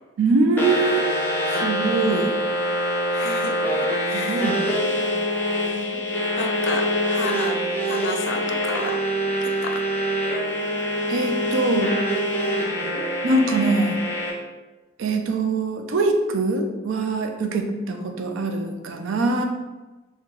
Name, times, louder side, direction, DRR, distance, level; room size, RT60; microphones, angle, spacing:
voice 1, 0.2-1.0 1.5-2.3 4.1-5.2 11.1-11.9 13.2-14.0 15.0-19.4, right 3 dB, 85° right, 5 dB, 0.4 m, -23 dB
sound 1, 0.6-14.3, equal, 10° left, 0.5 m, -25 dB
voice 2, 3.1-4.5 5.7-6.0 6.4-9.0 9.4-9.8 17.5-18.1, left 3 dB, 70° left, 5 dB, 0.4 m, -33 dB
3.7 x 2.2 x 2.9 m, 1.1 s
head